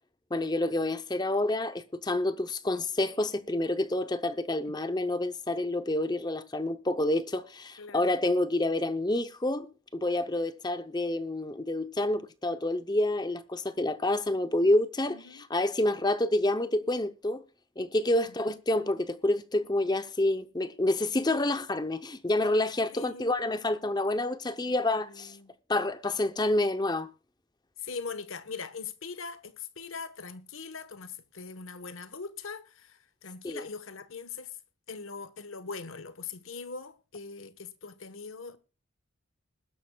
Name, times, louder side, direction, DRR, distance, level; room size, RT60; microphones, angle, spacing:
voice 1, 0.3-9.7 9.9-17.4 17.8-25.4 25.7-27.1 33.4-33.6, left 1 dB, 20° left, 0.6 m, -28 dB
voice 2, 7.8-8.1 15.1-15.5 18.2-18.3 22.9-23.3 24.6-25.5 27.8-34.6 34.9-38.6, left 5 dB, 75° left, 1.2 m, -41 dB
21.0 x 12.0 x 2.3 m
head